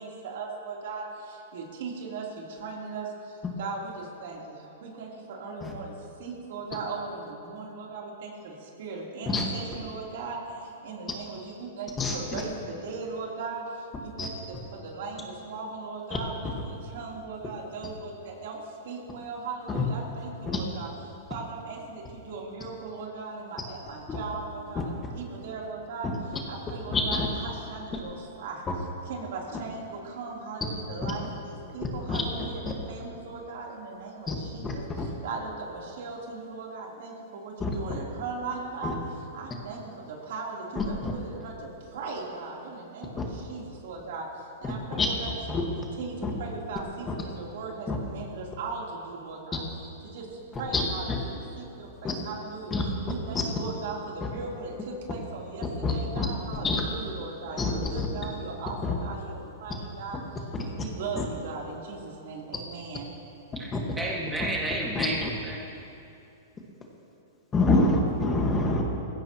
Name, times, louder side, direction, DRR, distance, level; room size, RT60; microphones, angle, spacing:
voice 1, 0.0-20.9 21.3-49.6 50.0-63.1, right 4 dB, 65° right, -2 dB, 3.5 m, -38 dB
voice 2, 26.9-27.3 32.1-32.2 34.3-34.4 35.0-35.1 37.6-37.7 38.8-38.9 40.8-41.1 44.9-45.1 45.5-45.6 46.2-46.3 47.9-48.0 50.7-50.8 51.1-51.2 52.0-52.1 52.7-52.8 55.8-56.3 56.6-56.8 57.6-57.7 58.0-58.1 58.8-58.9 61.2-61.3 63.7-63.8 65.0-65.3 67.5-68.8, left 3 dB, 15° left, 0 dB, 1.6 m, -26 dB
voice 3, 63.6-65.6, right 1 dB, 5° right, -4 dB, 1.9 m, -32 dB
20.0 x 16.0 x 3.0 m, 2.7 s
hypercardioid pair, 145°, 0 cm